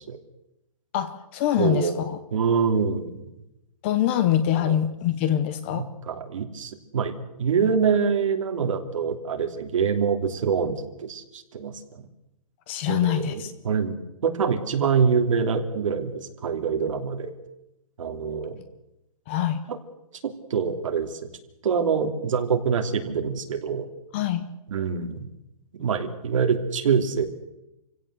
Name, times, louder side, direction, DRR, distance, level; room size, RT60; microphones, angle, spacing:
voice 1, 0.9-2.2 3.8-5.9 12.7-13.5 19.3-19.6 24.1-24.5, left 11 dB, 20° left, 13 dB, 0.7 m, -24 dB
voice 2, 1.6-2.0 2.3-3.2 4.6-4.7 5.8-11.7 12.9-17.3 18.0-18.6 19.7-19.8 20.2-21.2 21.6-23.9 24.7-25.3 25.8-27.2, right 6 dB, 55° right, 5 dB, 3.1 m, -25 dB
27.5 x 16.5 x 8.0 m, 0.90 s
hypercardioid pair, 175°, 20 cm